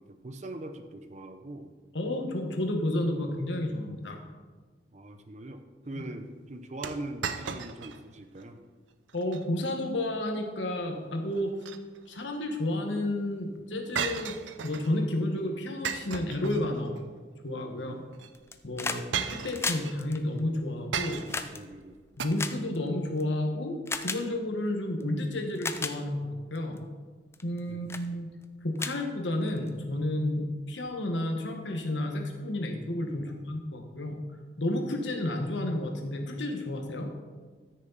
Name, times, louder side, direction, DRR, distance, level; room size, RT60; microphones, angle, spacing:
voice 1, 0.0-1.7 4.9-8.6 17.7-18.1 21.1-22.0 27.7-27.8 33.2-33.6, right 2 dB, 40° right, 8 dB, 0.7 m, -42 dB
voice 2, 1.9-4.2 9.1-11.5 12.1-14.3 14.6-16.9 17.4-17.9 18.6-21.2 22.2-23.8 24.0-26.9 27.4-28.3 28.6-34.2 34.6-37.1, left 1 dB, 85° left, 3 dB, 1.4 m, -31 dB
sound 1, 6.8-8.0 8.4-8.5 9.1-9.4 11.4-12.2 14.0-14.9 15.8-17.0 18.1-18.3 19.1-20.0 20.9-21.5 22.2-22.3, right 7 dB, 85° right, 0.6 m, -35 dB
sound 2, 18.3-19.1 19.3-23.2 23.9-24.2 25.0-25.1 25.5-26.0 26.6-26.8 27.3-27.6 27.9-28.1 28.4-28.5 28.8-29.7 30.9-31.0, left 4 dB, 15° left, 0.4 m, -35 dB
13.5 x 6.5 x 4.0 m, 1.4 s
head